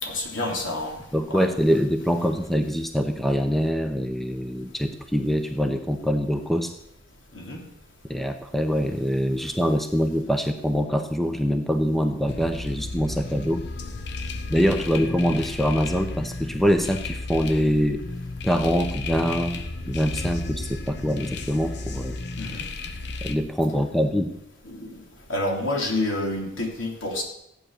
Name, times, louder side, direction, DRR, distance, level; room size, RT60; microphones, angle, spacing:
voice 1, 0.0-1.0 1.3-1.5 7.3-7.6 22.4-22.7 24.6-24.9 25.3-27.2, left 2 dB, 70° left, 0 dB, 3.3 m, -28 dB
voice 2, 1.1-6.7 8.1-13.6 14.5-18.0 18.4-19.6 19.9-22.2 23.2-24.3, equal, ahead, 6 dB, 0.8 m, -24 dB
sound 1, 12.3-23.4, left 3 dB, 55° left, 1.1 m, -33 dB
15.0 x 9.1 x 6.7 m, 0.80 s
head